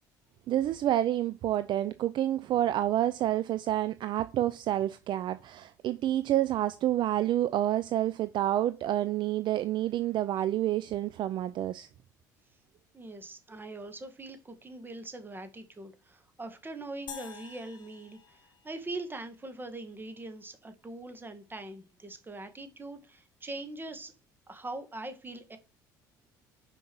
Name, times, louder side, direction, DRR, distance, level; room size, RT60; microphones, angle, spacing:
voice 1, 0.5-11.9, right 13 dB, 55° right, 0.5 m, -28 dB
voice 2, 12.9-24.1 24.5-25.6, right 2 dB, 20° right, 2.0 m, -42 dB
sound 1, 17.1-19.5, left 8 dB, 45° left, 2.1 m, -48 dB
5.6 x 5.3 x 6.2 m
hypercardioid pair, 65°, 10 cm